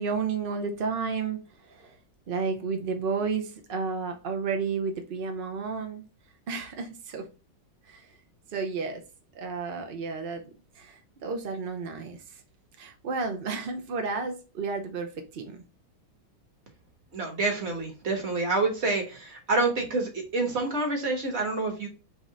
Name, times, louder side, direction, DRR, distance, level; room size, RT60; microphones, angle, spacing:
voice 1, 0.0-2.0 2.3-6.0 6.5-7.3 7.8-8.2 8.5-9.0 9.3-10.4 10.7-12.4 12.8-15.6, right 4 dB, 70° right, 0.5 m, -32 dB
voice 2, 17.1-21.9, right 3 dB, 40° right, 1.4 m, -27 dB
4.0 x 3.1 x 4.0 m
omnidirectional pair, 1.9 m